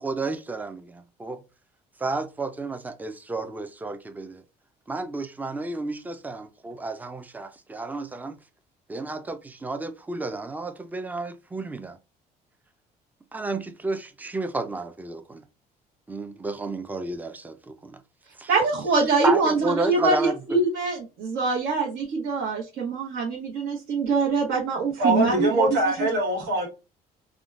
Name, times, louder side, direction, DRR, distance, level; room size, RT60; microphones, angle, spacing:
voice 1, 0.0-1.4 2.0-4.4 4.9-8.4 8.9-12.0 13.3-15.4 16.1-18.0 18.4-18.5 19.2-20.3, right 3 dB, 10° right, 0.4 m, -31 dB
voice 2, 18.5-25.7 26.0-26.1, right 4 dB, 70° right, 0.9 m, -24 dB
voice 3, 25.0-26.7, right 1 dB, 85° right, 1.4 m, -23 dB
3.5 x 2.2 x 2.5 m
cardioid pair, 110°, 17 cm